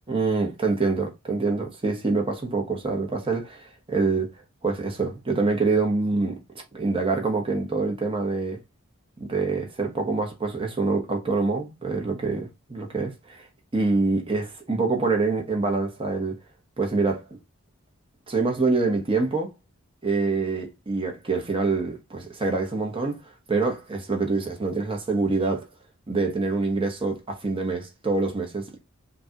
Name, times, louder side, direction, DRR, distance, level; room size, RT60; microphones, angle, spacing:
voice 1, 0.1-4.3 4.6-6.4 6.7-8.6 9.2-13.5 13.7-16.4 16.8-17.4 18.3-19.5 20.0-23.2 23.5-25.7 26.1-28.8, right 3 dB, 25° right, 0.9 m, -25 dB
5.1 x 2.3 x 2.8 m
head